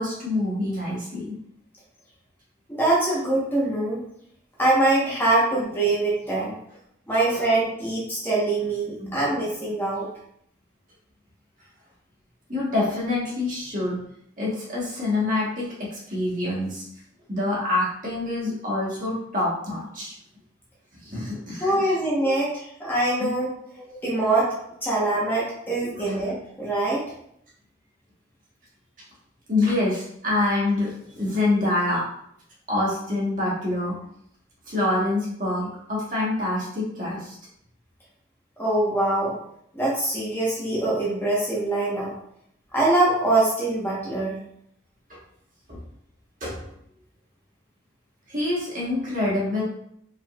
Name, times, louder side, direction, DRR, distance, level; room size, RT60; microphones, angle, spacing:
voice 1, 0.0-1.3 9.0-9.2 12.5-14.0 14.4-16.8 17.3-20.1 21.0-21.9 22.2-22.3 23.2-23.3 25.8-26.2 29.5-32.0 32.7-34.0 34.7-37.4 45.7-45.8 46.4-46.6 48.3-49.6, left 2 dB, 45° right, -5 dB, 1.5 m, -26 dB
voice 2, 2.7-4.0 4.6-6.5 7.1-10.1 21.6-23.5 24.0-24.5 24.8-27.1 38.6-39.3 39.7-42.1 42.7-44.3, right 2 dB, 10° left, -7 dB, 1.2 m, -23 dB
4.8 x 4.0 x 2.5 m, 0.71 s
head